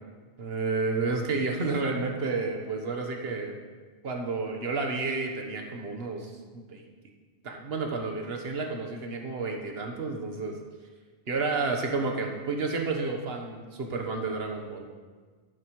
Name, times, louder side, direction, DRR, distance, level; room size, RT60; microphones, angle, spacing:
voice 1, 0.4-3.6 4.0-6.9 7.4-10.6 11.3-14.9, right 3 dB, 65° right, 3 dB, 1.4 m, -31 dB
11.0 x 10.0 x 3.2 m, 1.4 s
omnidirectional pair, 1.1 m